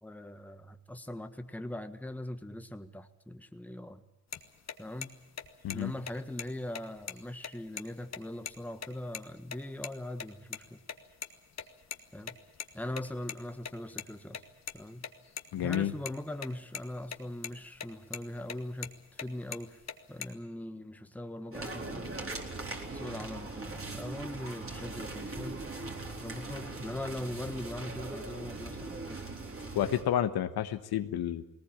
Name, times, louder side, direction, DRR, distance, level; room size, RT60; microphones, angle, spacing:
voice 1, 0.0-4.0 4.8-5.1 5.7-10.8 12.1-12.4 12.7-14.4 14.7-15.1 15.6-19.8 20.1-22.6 22.9-25.7 26.2-29.3, left 1 dB, 5° left, 8 dB, 1.5 m, -41 dB
sound 1, 4.3-4.4 4.7-4.8 5.0-5.1 5.4-5.8 6.1-6.2 6.4-6.5 6.7-7.8 8.1-8.2 8.5-8.6 8.8-9.2 9.5-9.9 10.2-11.3 11.5-14.0 14.3-16.1 16.4-16.5 16.7-17.2 17.4-17.9 18.1-19.3 19.5-20.3, left 7 dB, 40° left, 1.7 m, -40 dB
voice 2, 15.5-15.9 29.7-31.4, left 10 dB, 65° left, 10 dB, 1.3 m, -30 dB
sound 2, 21.5-30.0, right 3 dB, 30° right, 4.1 m, -40 dB
19.5 x 19.0 x 8.8 m, 0.96 s
supercardioid pair, 65°, 41 cm